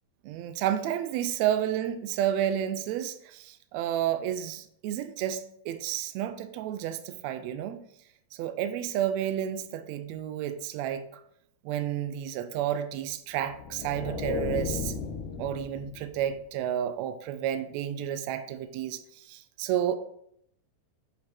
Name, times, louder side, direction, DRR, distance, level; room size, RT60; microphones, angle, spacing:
voice 1, 0.2-7.8 8.3-11.2 11.6-14.9 15.4-19.0 19.3-19.9, right 10 dB, 90° right, 1.5 m, -31 dB
sound 1, 13.4-16.4, left 6 dB, 75° left, 1.9 m, -35 dB
6.3 x 5.4 x 4.3 m
omnidirectional pair, 3.8 m